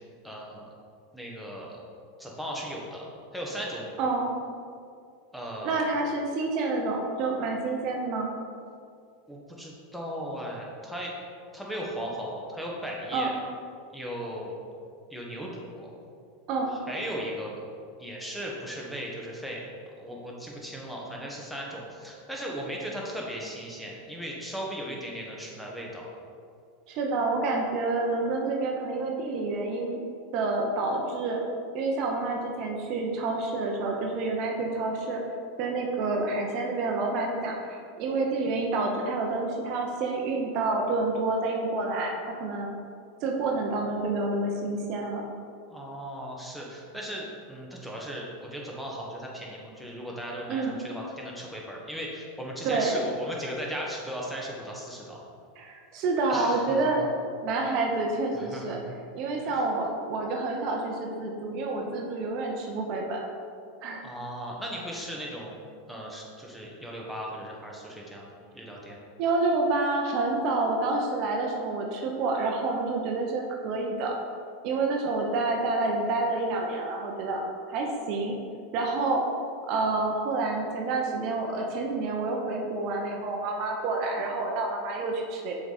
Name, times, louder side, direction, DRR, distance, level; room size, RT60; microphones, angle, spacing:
voice 1, 0.2-0.7 1.1-1.8 2.2-3.1 3.3-4.0 5.3-5.8 9.3-11.1 11.5-13.3 13.9-14.5 15.1-15.9 16.7-17.6 18.0-19.6 20.0-26.1 45.7-55.2 56.3-56.9 58.3-59.0 59.4-59.6 64.0-65.5 65.9-68.3 68.5-69.1, equal, ahead, -3 dB, 1.3 m, -37 dB
voice 2, 4.0-4.3 5.6-8.3 13.1-13.3 16.5-16.8 26.9-30.0 30.3-31.4 31.7-35.2 35.6-42.7 43.2-45.2 50.5-50.9 52.6-53.0 55.6-57.0 57.4-58.8 59.1-63.2 63.8-64.0 69.2-74.1 74.6-77.4 77.7-78.3 78.7-79.2 79.7-85.5, right 3 dB, 50° right, 1 dB, 0.8 m, -28 dB
6.7 x 4.1 x 4.2 m, 2.3 s
hypercardioid pair, 100°, 0 cm